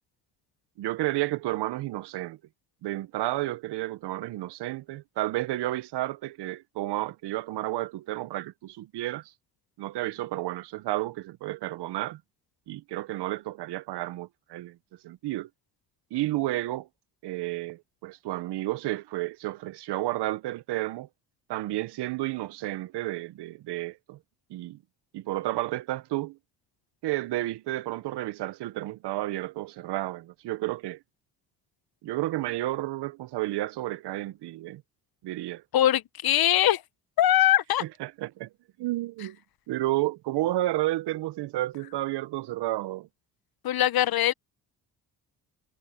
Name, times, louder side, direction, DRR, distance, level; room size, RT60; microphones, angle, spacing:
voice 1, 0.8-2.4 2.8-9.3 9.8-12.2 12.7-14.8 15.0-15.5 16.1-16.9 17.2-21.1 21.5-24.2 24.5-24.8 25.1-26.4 27.0-31.0 32.0-34.8 35.2-35.6 37.8-38.5 38.8-39.4 39.7-43.1, right 16 dB, 70° right, 1.1 m, -31 dB
voice 2, 35.7-36.8 37.2-37.8 43.6-44.3, left 12 dB, 55° left, 1.2 m, -22 dB
supercardioid pair, 65°, 42 cm